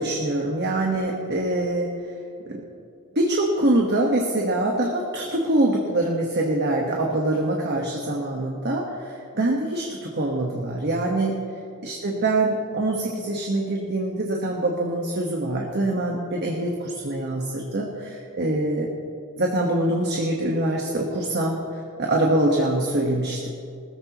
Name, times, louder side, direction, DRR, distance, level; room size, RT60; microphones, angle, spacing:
voice 1, 0.0-1.9 2.5-2.6 3.1-11.4 11.8-18.9 19.4-23.5, right 1 dB, 50° right, -1 dB, 1.3 m, -24 dB
19.5 x 14.5 x 3.0 m, 2.4 s
head